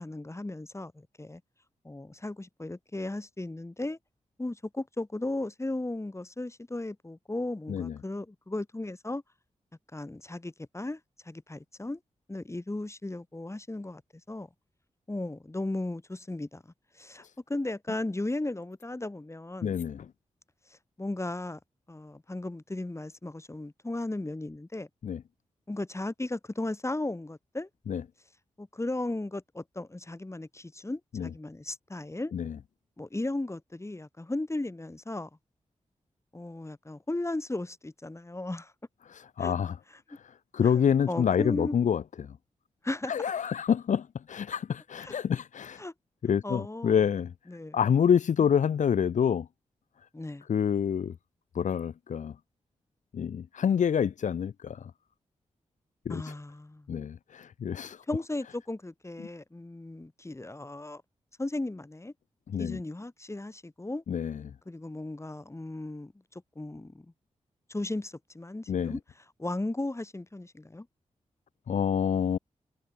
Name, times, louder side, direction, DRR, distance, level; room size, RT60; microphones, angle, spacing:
voice 1, 0.0-1.4 1.8-4.0 4.4-9.2 9.9-11.0 11.2-12.0 12.3-14.0 14.3-14.5 15.1-16.6 17.0-19.8 21.0-21.6 21.9-24.9 25.7-27.7 28.6-32.3 33.0-35.3 36.3-38.7 39.4-39.5 40.6-41.7 42.8-43.1 45.0-45.1 45.8-45.9 46.4-47.0 47.5-47.8 50.1-50.4 56.1-56.9 58.1-61.0 61.4-62.1 62.6-64.0 64.7-67.1 67.7-69.0 69.4-70.9, left 2 dB, 20° left, 7.3 m, -36 dB
voice 2, 19.6-20.1 25.0-25.2 27.9-28.0 31.1-31.3 32.3-32.6 39.1-39.8 40.5-42.3 43.1-45.8 46.2-47.3 47.7-49.5 50.5-51.1 51.5-52.3 53.1-54.9 56.0-56.2 56.9-58.0 62.5-62.8 64.1-64.4 68.7-69.0 71.7-72.4, left 8 dB, 85° left, 1.7 m, -27 dB
cardioid pair, 60°, 12 cm